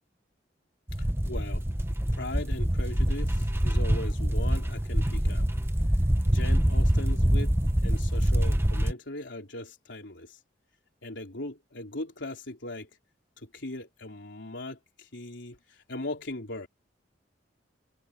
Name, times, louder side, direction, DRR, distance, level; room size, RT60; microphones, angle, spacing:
sound 1, 0.9-8.9, equal, 15° right, 1.3 m, -25 dB
voice 1, 1.0-1.7 2.1-5.5 6.3-10.4 11.0-12.9 13.4-16.7, left 1 dB, 90° left, 3.5 m, -39 dB
head